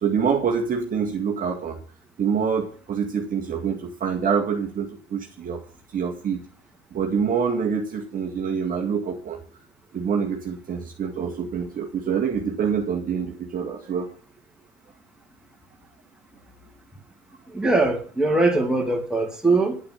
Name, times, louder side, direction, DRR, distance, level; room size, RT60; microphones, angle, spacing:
voice 1, 0.0-1.8 2.2-5.6 5.9-6.4 6.9-9.4 9.9-14.1, right 6 dB, 25° right, 1.9 m, -26 dB
voice 2, 17.5-19.8, right 2 dB, ahead, 2.7 m, -21 dB
11.0 x 8.7 x 5.7 m
figure-of-eight pair, 80°, 32 cm